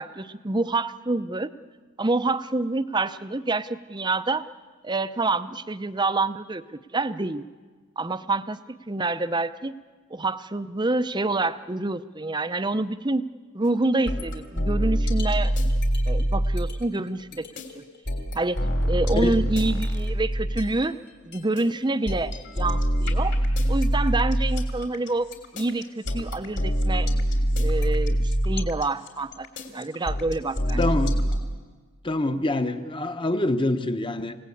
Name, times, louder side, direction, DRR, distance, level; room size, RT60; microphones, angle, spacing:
voice 1, 0.0-1.5 2.0-4.5 4.8-6.6 6.9-7.4 8.0-8.6 8.9-9.7 10.1-13.2 13.5-15.5 16.1-17.5 18.3-18.6 18.9-21.0 21.2-23.4 23.7-25.3 25.5-27.1 27.5-30.9, right 2 dB, 20° right, 12 dB, 0.6 m, -27 dB
sound 1, 14.1-20.9 21.3-31.4, equal, 55° left, 3.4 m, -24 dB
voice 2, 30.8-31.3 32.0-34.4, left 2 dB, 25° left, 9 dB, 1.0 m, -25 dB
28.0 x 17.5 x 8.6 m, 1.4 s
head